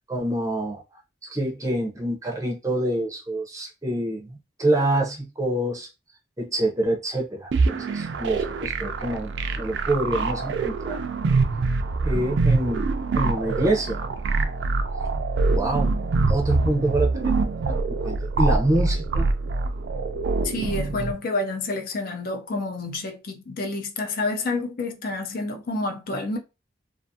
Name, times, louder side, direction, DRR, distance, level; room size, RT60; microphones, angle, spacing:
voice 1, 0.1-0.8 1.3-5.9 6.4-11.0 12.0-14.1 15.5-16.0 16.3-19.3, right 1 dB, 15° right, 0.6 m, -26 dB
sound 1, 7.5-21.1, right 3 dB, 70° right, 0.4 m, -24 dB
voice 2, 20.4-26.4, left 2 dB, 50° left, 0.5 m, -29 dB
2.4 x 2.4 x 2.6 m
head